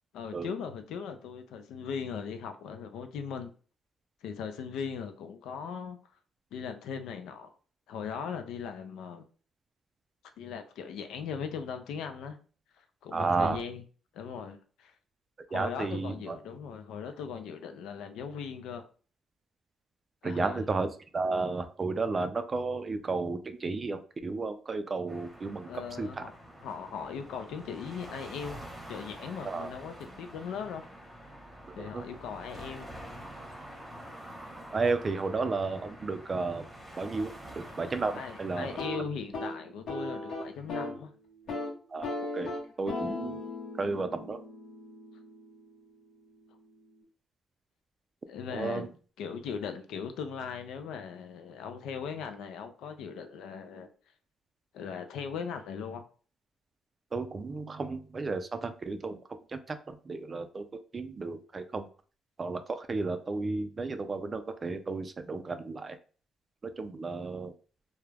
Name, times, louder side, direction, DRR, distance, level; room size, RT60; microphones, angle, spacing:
voice 1, 0.1-3.5 4.2-6.0 6.5-7.5 7.9-9.2 10.4-12.4 12.8-13.8 14.1-14.9 15.5-18.9 20.2-20.7 25.7-28.6 28.9-30.9 31.7-32.9 38.1-41.1 48.3-48.9 49.2-53.9 54.7-56.0, left 6 dB, 85° left, 8 dB, 0.4 m, -39 dB
voice 2, 13.1-13.6 15.5-16.4 20.2-25.7 26.0-26.2 29.4-29.7 31.7-32.0 34.7-36.7 37.0-38.8 41.9-42.5 42.8-43.5 43.8-44.4 48.5-48.9 57.1-59.2 59.5-60.7 60.9-61.9 62.4-66.0 66.6-67.5, right 3 dB, 35° right, 9 dB, 0.3 m, -33 dB
sound 1, 25.1-38.9, right 1 dB, 5° right, 0.9 m, -47 dB
sound 2, 38.6-41.0 41.3-41.7 42.0-45.9, left 2 dB, 60° left, 0.8 m, -38 dB
2.3 x 2.0 x 3.2 m, 0.39 s
cardioid pair, 90°, 0 cm